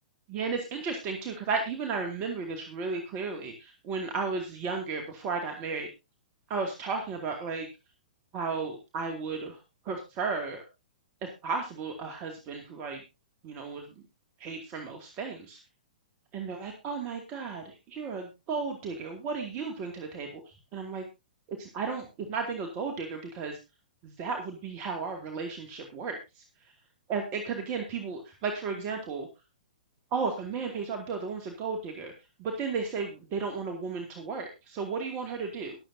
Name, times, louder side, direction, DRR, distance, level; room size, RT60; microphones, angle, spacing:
voice 1, 0.3-5.9 6.5-7.7 8.3-9.6 9.8-10.6 11.2-13.0 13.4-13.9 14.4-15.6 16.3-20.4 20.7-21.0 21.5-23.6 24.0-26.4 27.1-29.3 30.1-32.1 32.4-35.8, right 4 dB, 30° right, 4 dB, 2.3 m, -34 dB
22.5 x 7.9 x 2.7 m, 0.27 s
figure-of-eight pair, 110°, 4 cm